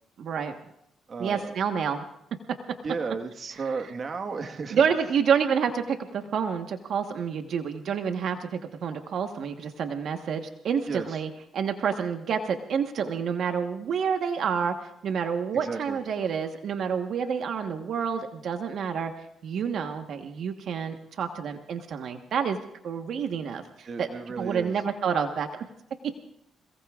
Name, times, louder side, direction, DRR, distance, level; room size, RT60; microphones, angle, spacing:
voice 1, 0.2-0.5 1.2-2.1 4.7-19.1 19.4-22.6 22.8-24.1 24.4-25.5, right 7 dB, 65° right, 5 dB, 1.3 m, -28 dB
voice 2, 1.1-1.5 2.8-4.8 10.9-11.2 15.6-16.0 23.8-24.7, right 4 dB, 45° right, 5 dB, 1.5 m, -34 dB
27.5 x 18.5 x 2.5 m, 0.78 s
cardioid pair, 90°, 0 cm